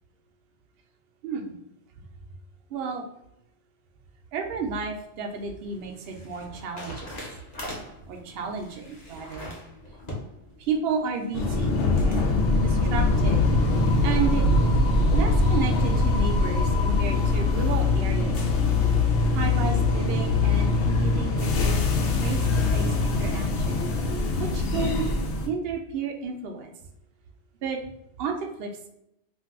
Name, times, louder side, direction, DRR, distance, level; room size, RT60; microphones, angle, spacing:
voice 1, 1.2-1.6 2.7-3.1 4.3-7.2 8.1-9.5 10.6-12.3 12.6-13.4 14.0-14.4 15.1-18.3 19.3-21.9 22.2-23.8 24.4-25.1 25.5-26.7 27.6-27.9 28.2-28.9, right 5 dB, 65° right, 2 dB, 0.7 m, -32 dB
sound 1, 4.9-12.2, left 1 dB, 40° left, 0.9 m, -43 dB
sound 2, 11.3-25.5, left 3 dB, 80° left, 0.9 m, -22 dB
2.6 x 2.3 x 3.5 m, 0.82 s
omnidirectional pair, 1.2 m